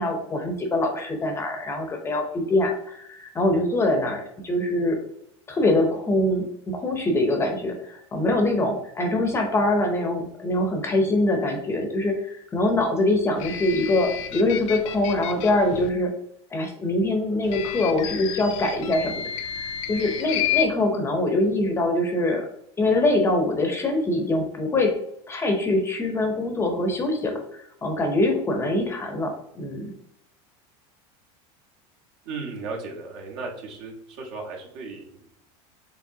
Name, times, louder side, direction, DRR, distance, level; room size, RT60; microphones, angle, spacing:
voice 1, 0.0-5.0 5.5-16.1 16.5-22.5 22.8-24.9 25.3-29.9, left 2 dB, 15° left, 3 dB, 0.6 m, -24 dB
sound 1, 13.4-15.9 17.4-20.7, left 10 dB, 90° left, 0.5 m, -31 dB
voice 2, 32.2-35.3, right 4 dB, 65° right, 0 dB, 1.3 m, -36 dB
4.8 x 3.1 x 2.7 m, 0.75 s
supercardioid pair, 145°, 15 cm